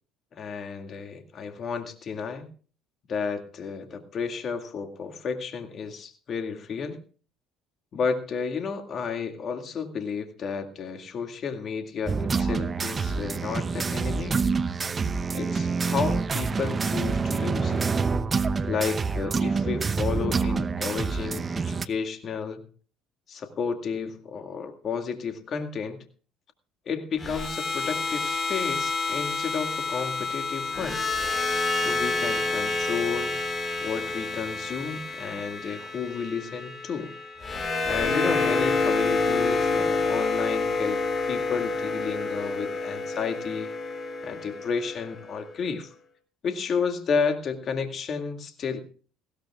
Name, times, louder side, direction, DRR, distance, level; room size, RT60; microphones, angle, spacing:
voice 1, 0.3-2.5 3.1-7.0 7.9-14.4 14.8-14.9 15.3-17.8 18.6-22.6 23.3-26.0 26.9-31.0 31.7-33.4 33.8-37.1 37.8-41.0 41.3-43.7 44.2-45.9 46.4-48.8, left 6 dB, 50° left, 6 dB, 2.1 m, -32 dB
sound 1, 12.1-21.8, right 4 dB, 35° right, 0.9 m, -27 dB
sound 2, 27.2-45.4, left 3 dB, 30° left, 5.8 m, -28 dB
19.0 x 17.0 x 2.4 m, 0.39 s
hypercardioid pair, 70°, 0 cm